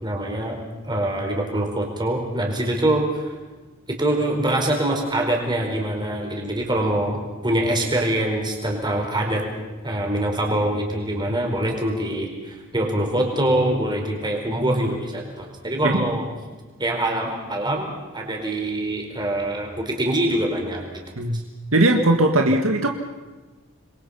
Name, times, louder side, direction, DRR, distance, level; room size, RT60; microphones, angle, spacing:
voice 1, 0.0-3.3 3.9-9.4 9.8-16.2 16.8-21.4, right 1 dB, 20° right, 1 dB, 4.6 m, -24 dB
voice 2, 21.7-22.9, right 1 dB, 70° right, 3 dB, 2.0 m, -19 dB
27.5 x 22.5 x 5.7 m, 1.3 s
head